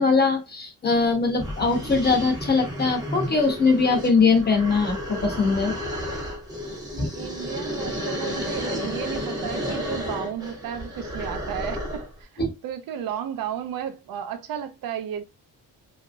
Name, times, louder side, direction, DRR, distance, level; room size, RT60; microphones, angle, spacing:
voice 1, 0.0-5.8 7.0-7.1 12.4-12.5, left 4 dB, 25° left, 0.7 m, -21 dB
sound 1, 1.0-1.1 1.4-12.2, equal, 10° right, 0.7 m, -32 dB
voice 2, 6.9-15.2, right 9 dB, 70° right, 0.6 m, -33 dB
2.9 x 2.5 x 2.5 m
wide cardioid pair, 165°, 36 cm